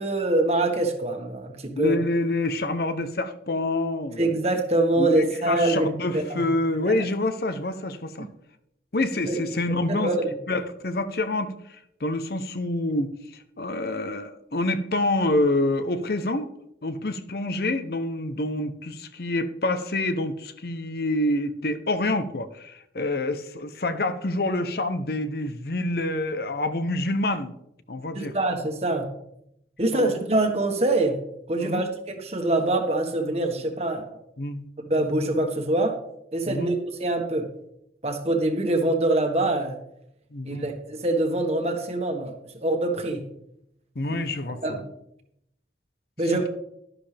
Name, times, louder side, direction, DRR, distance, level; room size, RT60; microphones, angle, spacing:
voice 1, 0.0-2.0 4.2-6.5 6.9-7.0 9.3-9.4 9.7-10.3 28.1-29.1 29.8-31.2 31.5-34.1 34.8-36.0 36.3-37.5 38.0-39.8 40.4-42.3 42.6-43.2 44.6-44.8 46.2-46.5, right 2 dB, 35° right, 4 dB, 1.5 m, -24 dB
voice 2, 1.8-4.3 5.0-8.3 8.9-10.1 10.5-11.5 12.0-13.1 13.6-16.5 16.8-27.5 27.9-28.4 29.9-30.1 31.6-31.8 34.4-34.6 36.5-36.7 40.3-40.7 44.0-44.8 46.3-46.5, left 2 dB, 55° left, 10 dB, 0.8 m, -27 dB
12.5 x 11.0 x 3.4 m, 0.78 s
head